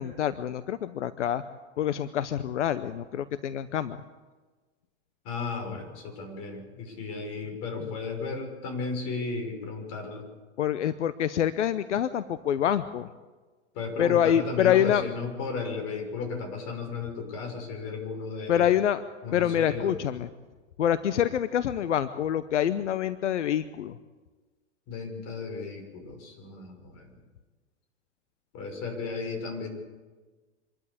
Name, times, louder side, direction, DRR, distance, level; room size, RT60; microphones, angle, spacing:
voice 1, 0.0-1.4 1.8-4.0 7.8-7.9 10.6-13.1 14.0-15.0 18.5-19.0 19.3-20.3 20.8-24.0, left 10 dB, 90° left, 14 dB, 0.8 m, -26 dB
voice 2, 5.2-10.2 13.7-18.7 19.2-20.0 24.9-27.1 28.5-29.7, left 4 dB, 45° left, 4 dB, 6.0 m, -35 dB
25.5 x 12.5 x 8.5 m, 1.3 s
hypercardioid pair, 115°, 35 cm